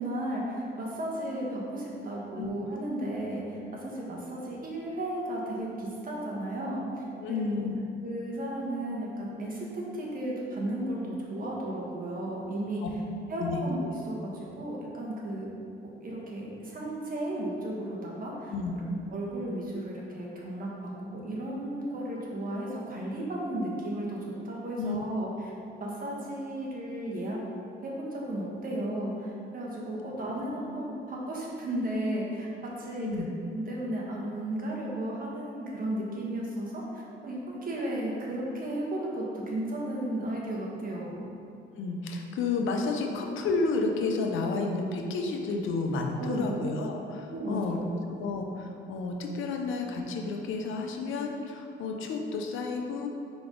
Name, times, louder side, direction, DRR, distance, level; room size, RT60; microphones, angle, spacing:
voice 1, 0.0-7.7 8.0-12.8 13.3-15.5 15.8-25.5 25.8-27.4 27.8-41.2 46.2-46.5 47.3-47.9, right 1 dB, 45° right, -4 dB, 1.5 m, -34 dB
voice 2, 7.2-7.7 12.8-12.9 13.4-13.6 18.5-18.7 24.8-25.0 33.0-33.3 41.8-47.8 48.1-53.1, left 3 dB, 80° left, 2 dB, 0.7 m, -31 dB
4.7 x 4.0 x 5.0 m, 2.6 s
cardioid pair, 90°, 20 cm